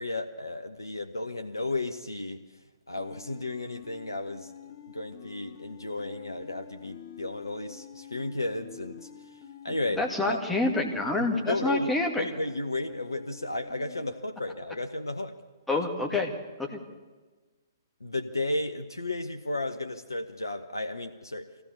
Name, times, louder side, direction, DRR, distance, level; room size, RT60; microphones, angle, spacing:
voice 1, 0.0-2.4 2.9-4.5 4.9-9.1 9.6-10.4 11.2-15.3 15.7-15.8 18.0-21.5, left 2 dB, 75° left, 6 dB, 1.1 m, -33 dB
sound 1, 2.9-14.1, left 8 dB, 35° left, 1.5 m, -48 dB
voice 2, 10.0-12.3 15.7-16.3 16.7-16.8, left 2 dB, 5° left, 1 dB, 2.3 m, -27 dB
24.0 x 16.0 x 7.1 m, 1.3 s
figure-of-eight pair, 125°, 2 cm